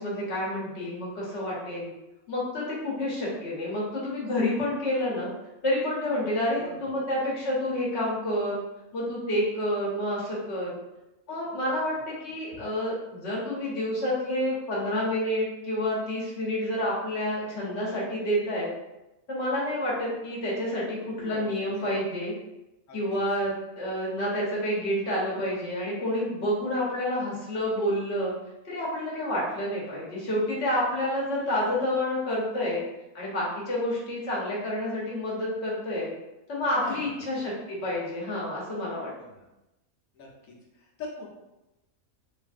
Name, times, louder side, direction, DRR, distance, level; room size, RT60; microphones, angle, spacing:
voice 1, 0.0-1.9 2.3-5.3 5.6-8.6 8.9-10.8 11.3-18.7 19.3-22.3 22.9-28.3 28.7-32.8 33.1-36.1 36.5-39.1, left 1 dB, 55° left, -6 dB, 1.2 m, -29 dB
voice 2, 6.5-6.9 11.9-12.0 12.5-12.6 21.2-21.7 22.9-23.2 36.8-37.0 39.2-39.4 40.1-41.3, left 3 dB, 75° left, -2 dB, 1.1 m, -42 dB
3.1 x 2.5 x 2.4 m, 0.98 s
omnidirectional pair, 1.5 m